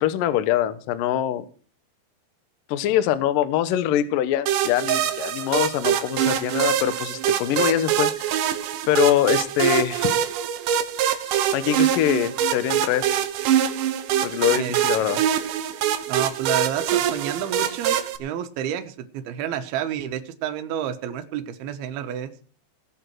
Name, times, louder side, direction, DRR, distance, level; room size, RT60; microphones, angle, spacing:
voice 1, 0.0-1.5 2.7-8.3 8.9-10.1 11.5-13.1 14.2-15.2, left 11 dB, 75° left, 12 dB, 2.1 m, -23 dB
sound 1, 4.5-18.2, right 10 dB, 85° right, 1.8 m, -24 dB
voice 2, 14.5-15.2 16.1-22.3, right 9 dB, 70° right, 8 dB, 2.9 m, -30 dB
18.0 x 8.9 x 4.7 m, 0.41 s
omnidirectional pair, 5.2 m